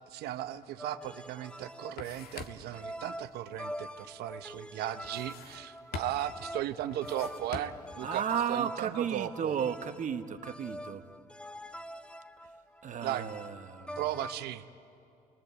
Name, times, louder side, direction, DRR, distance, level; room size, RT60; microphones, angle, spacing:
voice 1, 0.0-8.2 8.5-9.5 13.0-13.3 14.0-14.6, right 12 dB, 80° right, 1.1 m, -36 dB
sound 1, 0.8-14.4, equal, 5° left, 0.7 m, -45 dB
sound 2, 1.1-1.2 1.6-2.8 5.0-5.7 5.9-6.4 6.9-8.0, left 5 dB, 75° left, 1.7 m, -44 dB
voice 2, 8.0-11.0 12.8-14.0, right 8 dB, 50° right, 1.4 m, -34 dB
29.0 x 22.0 x 8.2 m
supercardioid pair, 85°, 16 cm